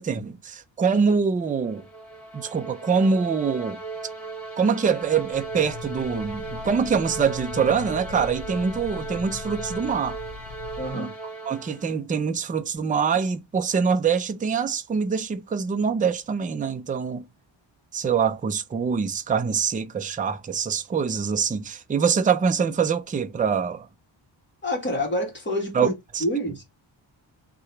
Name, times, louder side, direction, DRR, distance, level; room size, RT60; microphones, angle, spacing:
voice 1, 0.0-1.8 2.3-3.8 4.6-10.2 10.9-11.1 11.5-17.2 17.9-23.9 25.7-25.9 26.1-26.2, right 6 dB, 20° right, 0.3 m, -24 dB
sound 1, 1.5-12.0, right 3 dB, ahead, 2.0 m, -37 dB
sound 2, 5.0-10.9, left 7 dB, 90° left, 0.8 m, -40 dB
voice 2, 10.8-11.2 24.6-25.9 26.2-26.6, left 1 dB, 25° left, 1.8 m, -27 dB
3.7 x 2.9 x 4.4 m
wide cardioid pair, 170°, 47 cm